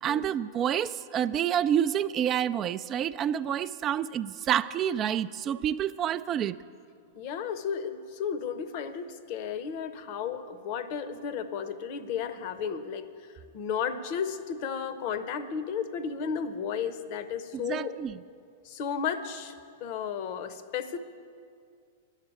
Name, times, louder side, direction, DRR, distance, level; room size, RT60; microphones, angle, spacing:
voice 1, 0.0-6.6 17.6-18.2, right 9 dB, 30° right, 14 dB, 0.3 m, -28 dB
voice 2, 7.1-18.0 18.6-21.0, left 7 dB, 50° left, 11 dB, 0.8 m, -33 dB
11.0 x 7.4 x 9.3 m, 2.3 s
figure-of-eight pair, 100°, 0 cm